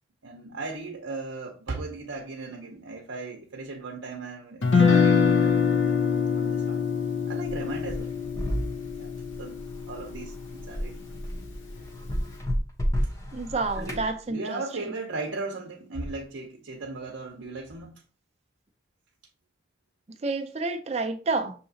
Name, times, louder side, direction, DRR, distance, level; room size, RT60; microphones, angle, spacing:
voice 1, 0.2-6.0 6.4-6.8 7.3-8.1 9.0-11.2 13.8-18.0, right 3 dB, 85° right, 0.7 m, -37 dB
Guitar, 4.6-10.7, left 6 dB, 75° left, 0.7 m, -24 dB
sound 1, 7.5-14.1, equal, 15° left, 0.6 m, -32 dB
voice 2, 13.3-14.6 20.2-21.5, right 3 dB, 35° right, 0.5 m, -29 dB
6.5 x 2.8 x 2.7 m
head